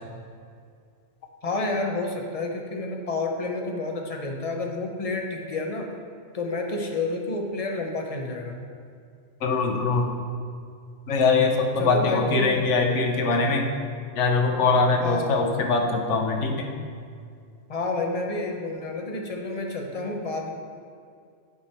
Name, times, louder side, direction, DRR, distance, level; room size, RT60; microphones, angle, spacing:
voice 1, 1.4-5.9 6.3-8.6 11.8-12.7 15.0-15.4 17.7-20.5, left 3 dB, 35° left, 2 dB, 0.8 m, -29 dB
voice 2, 9.4-10.1 11.1-13.7 14.2-16.7, left 3 dB, 90° left, 3 dB, 1.2 m, -22 dB
9.1 x 4.9 x 4.3 m, 2.2 s
omnidirectional pair, 1.2 m